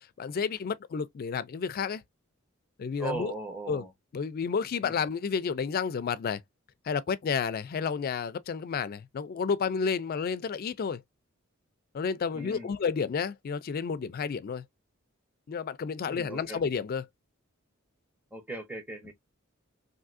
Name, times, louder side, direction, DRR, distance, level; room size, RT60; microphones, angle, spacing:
voice 1, 0.2-2.0 2.8-3.3 3.7-3.8 4.1-6.4 6.9-11.0 11.9-14.6 15.5-17.0, left 6 dB, 45° left, 0.3 m, -31 dB
voice 2, 3.0-3.9 4.8-5.0 12.3-12.8 16.1-16.6 18.3-19.1, right 2 dB, 10° right, 0.7 m, -38 dB
3.5 x 2.6 x 2.5 m
head